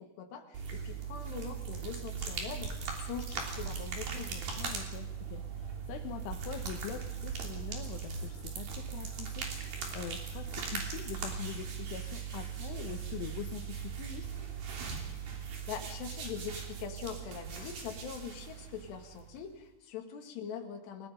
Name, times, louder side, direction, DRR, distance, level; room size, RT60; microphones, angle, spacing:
voice 1, 0.0-4.8 15.7-21.1, left 7 dB, 60° left, 3 dB, 4.0 m, -43 dB
sound 1, 0.5-19.4, right 6 dB, 50° right, 4.6 m, -39 dB
voice 2, 4.5-14.3, left 10 dB, 80° left, 4 dB, 3.6 m, -44 dB
30.0 x 19.0 x 5.2 m, 0.92 s
omnidirectional pair, 5.7 m